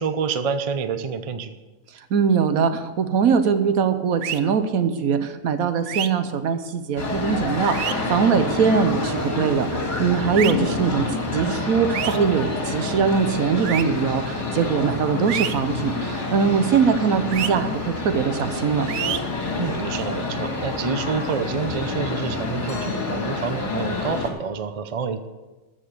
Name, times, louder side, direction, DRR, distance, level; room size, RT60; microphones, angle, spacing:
voice 1, 0.0-1.5 19.6-25.2, right 5 dB, 40° right, 10 dB, 0.5 m, -28 dB
voice 2, 2.1-18.9, right 6 dB, 85° right, 10 dB, 1.3 m, -22 dB
sound 1, 4.2-4.4 5.9-6.1 7.7-7.9 10.3-10.5 11.9-12.2 13.6-13.8 15.3-15.5 17.3-17.5 18.9-19.2, right 10 dB, 65° right, 0.9 m, -27 dB
sound 2, 7.0-24.3, left 3 dB, 55° left, 2.4 m, -28 dB
13.0 x 7.2 x 6.7 m, 1.2 s
omnidirectional pair, 1.5 m